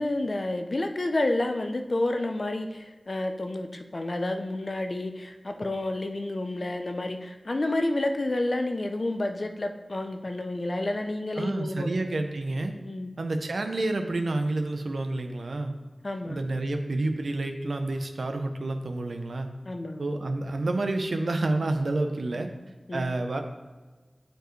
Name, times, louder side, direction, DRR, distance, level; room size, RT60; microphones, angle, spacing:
voice 1, 0.0-11.9 12.8-13.1 16.0-16.4 19.7-20.1 22.9-23.0, left 2 dB, 50° left, 5 dB, 0.6 m, -30 dB
voice 2, 11.4-12.7 13.2-15.7 16.3-19.5 20.0-22.5 22.9-23.4, right 2 dB, 80° right, 5 dB, 0.7 m, -29 dB
9.1 x 4.5 x 3.2 m, 1.3 s
wide cardioid pair, 65°, 0 cm